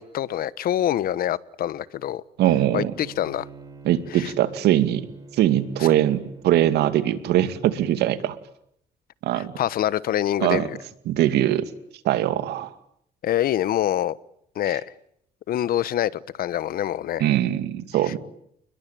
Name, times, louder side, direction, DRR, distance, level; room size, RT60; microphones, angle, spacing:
voice 1, 0.0-2.2 2.7-3.5 4.1-4.3 5.8-5.9 9.3-10.8 13.2-14.2 14.5-14.8 15.5-17.3 18.0-18.1, left 11 dB, 60° left, 18 dB, 1.2 m, -25 dB
Bowed string instrument, 2.4-7.0, right 4 dB, 20° right, 7.2 m, -45 dB
voice 2, 2.4-2.9 3.8-5.1 5.4-8.4 9.2-9.5 10.4-10.7 11.1-11.7 12.0-12.7 17.2-18.2, right 12 dB, 75° right, 11 dB, 2.5 m, -21 dB
30.0 x 21.5 x 9.2 m, 0.72 s
cardioid pair, 110°, 17 cm